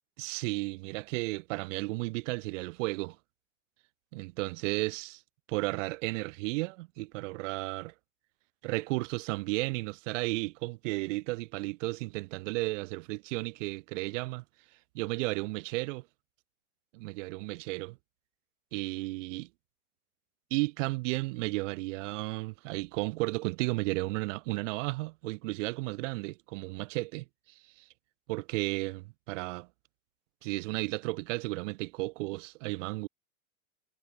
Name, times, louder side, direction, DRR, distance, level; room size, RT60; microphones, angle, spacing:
voice 1, 0.2-3.2 4.1-5.1 5.5-7.9 8.6-14.4 14.9-16.0 16.9-18.0 18.7-19.5 20.5-27.2 28.3-29.7 30.4-33.1, right 23 dB, 60° right, 7.5 m, -33 dB
hypercardioid pair, 110°, 42 cm